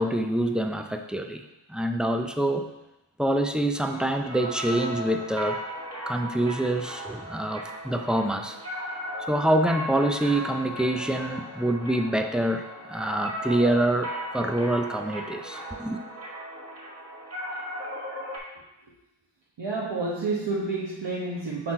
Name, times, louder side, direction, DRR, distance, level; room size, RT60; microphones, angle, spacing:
voice 1, 0.0-1.4 1.7-2.7 3.2-5.6 6.1-8.6 9.3-16.0, right 1 dB, ahead, 6 dB, 0.3 m, -26 dB
sound 1, 3.7-18.4, equal, 30° right, 1.7 m, -37 dB
voice 2, 19.6-21.7, right 3 dB, 65° right, -5 dB, 1.0 m, -29 dB
6.1 x 4.0 x 4.2 m, 0.94 s
wide cardioid pair, 95°, 47 cm